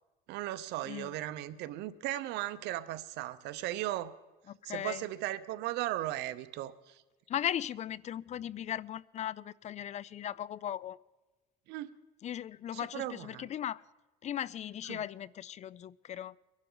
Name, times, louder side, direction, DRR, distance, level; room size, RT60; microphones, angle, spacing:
voice 1, 0.3-4.1 4.6-7.0 11.7-11.9 12.7-13.5 14.9-15.0, right 14 dB, 90° right, 13 dB, 0.7 m, -37 dB
voice 2, 4.5-5.0 7.3-11.0 12.2-13.8 14.2-16.4, left 10 dB, 45° left, 22 dB, 0.4 m, -38 dB
23.0 x 11.5 x 3.9 m, 1.1 s
cardioid pair, 110°, 17 cm